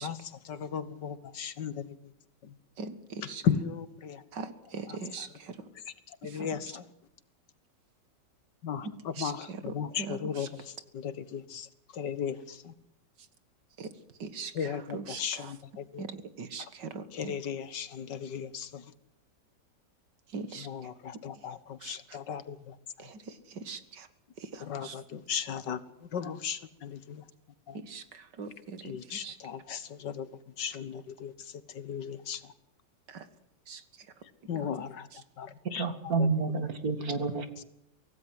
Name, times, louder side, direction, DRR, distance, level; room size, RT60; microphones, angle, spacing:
voice 1, 0.0-1.9 2.4-2.5 3.2-4.2 4.9-5.3 6.1-6.9 8.6-11.7 11.9-12.7 14.5-16.0 16.6-16.7 17.1-18.8 20.6-22.8 24.6-27.2 27.7-27.8 28.8-30.3 30.6-31.3 31.7-32.4 34.5-35.1 35.4-35.9 36.2-36.3 37.2-37.3 37.6-37.7, left 7 dB, 80° left, 2.0 m, -36 dB
voice 2, 2.8-3.4 4.3-5.5 6.3-6.5 8.8-10.5 13.8-13.9 14.2-15.5 16.0-17.3 20.3-20.7 21.8-22.0 23.0-24.1 24.5-25.0 27.7-28.9 29.2-29.4 33.1-33.2 33.7-33.8 34.6-34.7, right 4 dB, 75° right, 2.3 m, -41 dB
voice 3, 35.7-37.6, right 4 dB, 55° right, 2.7 m, -29 dB
24.5 x 17.0 x 7.8 m
omnidirectional pair, 1.9 m